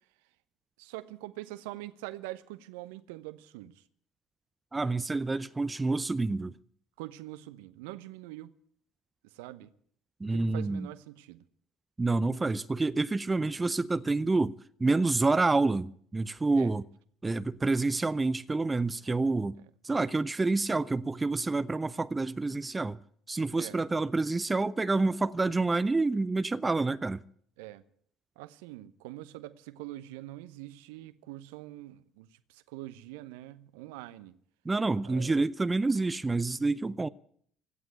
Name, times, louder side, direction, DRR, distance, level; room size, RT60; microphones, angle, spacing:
voice 1, 0.8-3.8 7.0-8.5 9.3-9.7 10.2-11.4 16.6-16.7 23.5-23.8 27.6-27.8 28.4-34.3 35.0-35.4, right 16 dB, 70° right, 0.9 m, -44 dB
voice 2, 4.7-6.5 10.2-10.9 12.0-16.8 17.2-19.6 19.8-23.0 23.3-27.2 34.6-37.1, right 3 dB, 20° right, 0.6 m, -28 dB
16.5 x 9.4 x 8.9 m
figure-of-eight pair, 55°, 0 cm